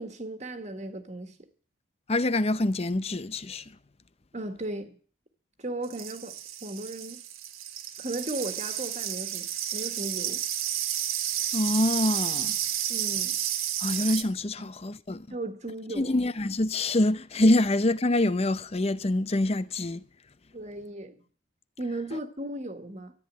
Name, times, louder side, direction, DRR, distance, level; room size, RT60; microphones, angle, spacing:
voice 1, 0.0-1.3 4.3-4.9 5.6-6.3 6.6-7.2 8.0-10.4 12.9-13.4 15.3-16.2 20.5-21.2 21.8-23.1, right 2 dB, 35° right, 1.8 m, -36 dB
voice 2, 2.1-3.6 11.5-12.6 13.8-15.3 16.0-20.0, left 1 dB, 30° left, 0.6 m, -25 dB
sound 1, 5.8-14.2, right 11 dB, 85° right, 1.6 m, -31 dB
14.0 x 10.5 x 7.7 m
head